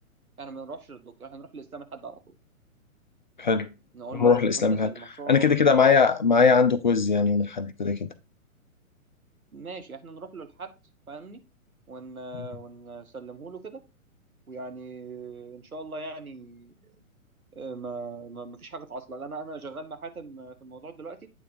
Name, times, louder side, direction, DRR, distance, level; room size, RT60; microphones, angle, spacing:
voice 1, 0.4-2.4 3.9-5.6 9.5-10.7 11.1-11.4 11.9-13.8 14.5-17.0 17.5-21.3, right 3 dB, 80° right, 1.2 m, -40 dB
voice 2, 4.1-4.9 5.3-8.1, left 5 dB, 35° left, 0.4 m, -21 dB
8.6 x 4.1 x 4.0 m
figure-of-eight pair, 120°, 43 cm